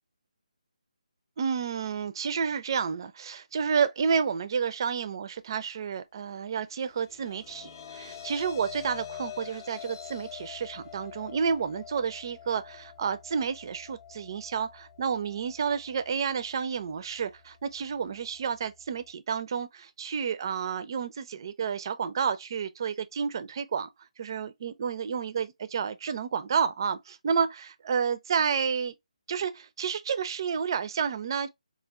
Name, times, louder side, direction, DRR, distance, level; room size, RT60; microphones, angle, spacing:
voice 1, 1.4-23.9 24.2-28.9 29.3-31.5, right 6 dB, 35° right, 0.4 m, -30 dB
sound 1, 6.8-19.1, left 9 dB, 25° left, 0.5 m, -46 dB
4.3 x 2.4 x 2.3 m
figure-of-eight pair, 160°, 4 cm